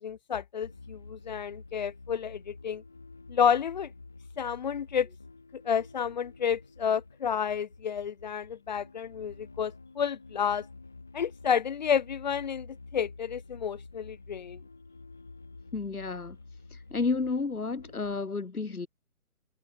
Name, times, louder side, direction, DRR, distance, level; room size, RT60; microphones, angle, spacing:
voice 1, 0.0-2.8 3.3-3.9 4.4-5.1 5.6-10.6 11.1-12.7 12.9-14.6, left 7 dB, 30° left, 2.4 m, -30 dB
sound 1, 0.6-18.3, left 3 dB, ahead, 0.8 m, -49 dB
voice 2, 15.7-16.4 16.9-18.9, left 4 dB, 80° left, 5.0 m, -31 dB
hypercardioid pair, 165°, 43 cm